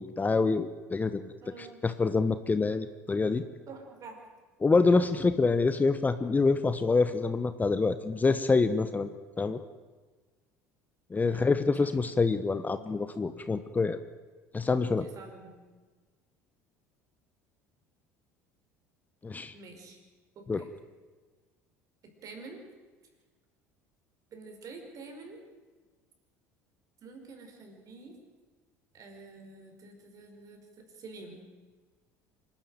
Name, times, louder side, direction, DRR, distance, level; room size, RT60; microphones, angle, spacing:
voice 1, 0.0-1.3 1.6-3.4 4.6-9.1 9.4-9.6 11.1-14.0 14.5-15.1 19.2-19.5 20.5-20.6, left 4 dB, 20° left, 11 dB, 1.1 m, -26 dB
voice 2, 1.4-1.8 3.7-4.2 11.2-12.2 15.0-15.5 19.5-20.0 20.4-20.7 22.0-22.6 24.3-25.4 27.0-28.2 28.9-31.4, right 3 dB, 45° right, 3 dB, 5.3 m, -48 dB
26.5 x 12.0 x 9.2 m, 1.4 s
figure-of-eight pair, 65°, 8 cm